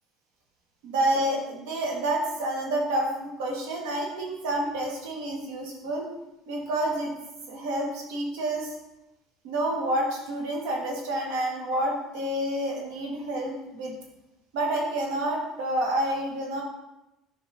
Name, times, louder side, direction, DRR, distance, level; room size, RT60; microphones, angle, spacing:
voice 1, 0.8-6.1 6.5-7.1 7.5-8.7 9.4-13.9 14.5-16.6, right 1 dB, 90° right, -1 dB, 1.6 m, -29 dB
8.6 x 5.8 x 2.7 m, 0.94 s
supercardioid pair, 105°, 0 cm